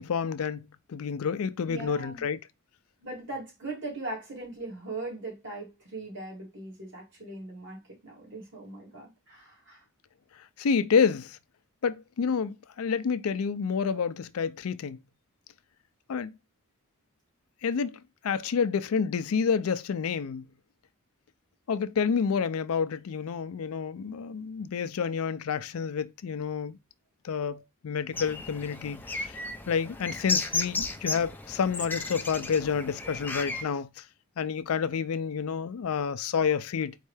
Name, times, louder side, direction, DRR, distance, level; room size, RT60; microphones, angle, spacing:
voice 1, 0.0-2.4 10.6-11.4 11.8-15.0 16.1-16.3 17.6-20.5 21.7-26.8 27.2-29.4 29.7-34.0 34.4-37.0, left 6 dB, 75° left, 0.4 m, -29 dB
voice 2, 1.6-2.3 3.0-9.8, right 2 dB, 55° right, 2.3 m, -40 dB
sound 1, 28.1-33.6, left 3 dB, 10° left, 0.5 m, -34 dB
4.4 x 3.2 x 3.2 m
head